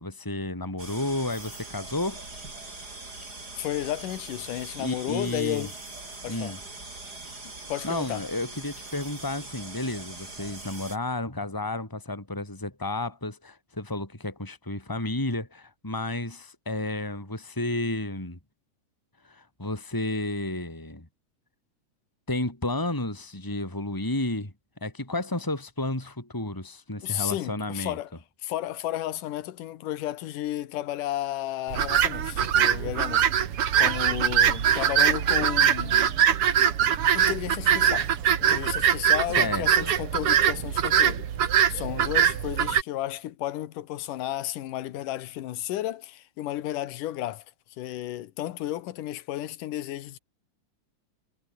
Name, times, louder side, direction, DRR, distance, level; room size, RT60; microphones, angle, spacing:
voice 1, 0.0-2.2 4.8-5.7 6.3-6.6 7.8-18.4 19.2-21.1 22.3-24.5 24.8-28.0 39.4-39.9, left 2 dB, 5° left, 4.5 m, -32 dB
sound 1, 0.8-11.0, right 2 dB, 30° right, 5.8 m, -42 dB
voice 2, 3.6-5.7 6.2-6.6 7.4-8.3 27.0-28.1 28.4-33.3 33.8-36.1 37.1-38.1 38.4-41.3 41.7-47.5 47.8-50.2, left 13 dB, 80° left, 2.8 m, -33 dB
sound 2, 31.7-42.8, right 9 dB, 50° right, 2.1 m, -22 dB
omnidirectional pair, 3.8 m